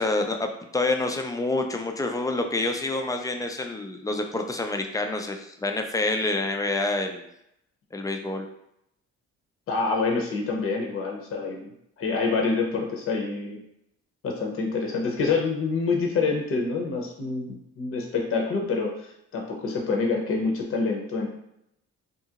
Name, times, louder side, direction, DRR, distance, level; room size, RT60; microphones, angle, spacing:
voice 1, 0.0-7.3 7.9-8.5, left 2 dB, 10° left, 4 dB, 0.3 m, -27 dB
voice 2, 9.7-11.7 12.0-13.6 14.2-21.3, left 4 dB, 45° left, 0 dB, 0.6 m, -27 dB
2.8 x 2.4 x 2.8 m, 0.78 s
cardioid pair, 90°, 30 cm